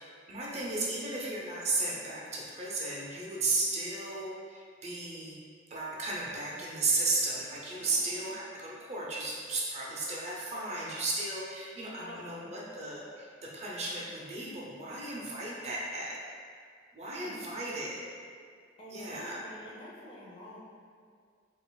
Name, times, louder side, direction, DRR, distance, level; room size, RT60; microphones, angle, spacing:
voice 1, 0.0-5.4 5.7-16.1 16.9-18.0 18.9-19.4, right 2 dB, 35° right, -5 dB, 0.6 m, -34 dB
voice 2, 7.8-8.3 12.0-12.6 17.0-17.4 18.8-20.6, left 1 dB, 30° left, -6 dB, 0.7 m, -49 dB
5.3 x 2.4 x 2.3 m, 2.1 s
head